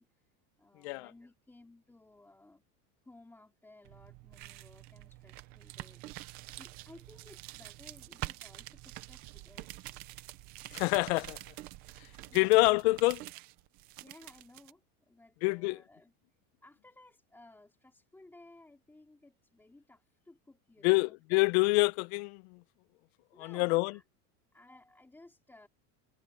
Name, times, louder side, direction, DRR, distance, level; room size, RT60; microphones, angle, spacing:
voice 1, 0.0-2.6 3.0-10.0 10.3-10.7 14.0-21.2 23.3-24.0 24.5-25.7, left 2 dB, 5° left, 2.8 m, -58 dB
voice 2, 0.8-1.1 10.7-11.4 12.3-13.2 15.4-15.8 20.8-22.6 23.4-23.9, left 24 dB, 50° left, 0.5 m, -26 dB
sound 1, 3.8-14.7, right 17 dB, 25° right, 0.3 m, -47 dB
supercardioid pair, 175°, 43 cm